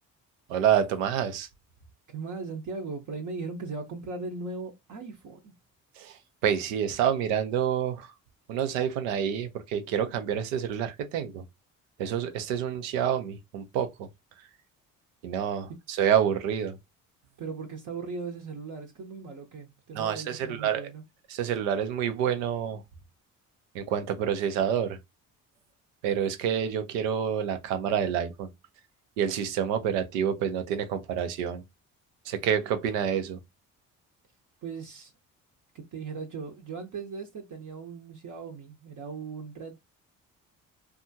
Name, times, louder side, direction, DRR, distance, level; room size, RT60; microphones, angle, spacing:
voice 1, 0.5-1.5 6.0-8.1 8.5-11.4 12.0-14.1 15.2-16.8 19.9-20.9 21.3-22.8 23.7-25.0 26.0-28.5 29.2-31.6 32.3-33.4, right 8 dB, 90° right, 0.6 m, -28 dB
voice 2, 2.1-5.5 17.4-21.0 34.6-35.1 35.7-39.8, right 4 dB, 50° right, 0.8 m, -38 dB
2.7 x 2.3 x 2.6 m
hypercardioid pair, 55°, 38 cm